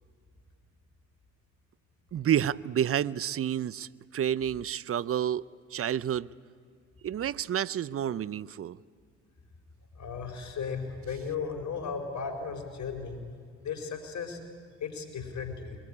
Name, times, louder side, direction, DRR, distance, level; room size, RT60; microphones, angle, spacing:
voice 1, 2.1-6.3 7.0-8.8, right 10 dB, 45° right, 0.6 m, -30 dB
voice 2, 9.9-13.2 13.6-14.4 14.8-15.8, left 5 dB, 55° left, 4.6 m, -35 dB
22.5 x 19.0 x 9.9 m
supercardioid pair, 60°, 33 cm